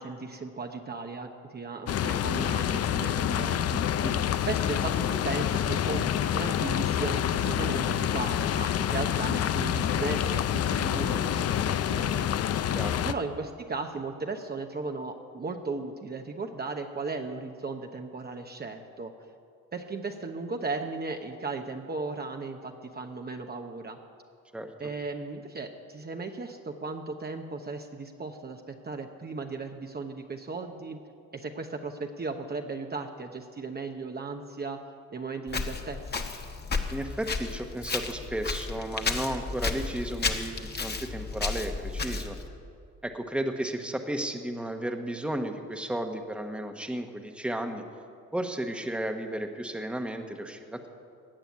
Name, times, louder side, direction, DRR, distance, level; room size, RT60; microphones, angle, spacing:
voice 1, 0.0-3.8 4.5-12.3 13.0-19.1 19.7-24.0 24.8-31.0 31.3-34.8 35.1-36.3, right 3 dB, 30° right, 4 dB, 1.0 m, -36 dB
sound 1, 1.9-13.1, left 10 dB, 55° left, 0.6 m, -27 dB
Walk footsteps, 35.5-42.5, left 4 dB, 35° left, 1.3 m, -33 dB
voice 2, 36.9-42.4 43.0-47.8 48.3-50.9, right 1 dB, 5° right, 5 dB, 1.2 m, -33 dB
16.5 x 6.9 x 9.4 m, 2.4 s
cardioid pair, 90°, 30 cm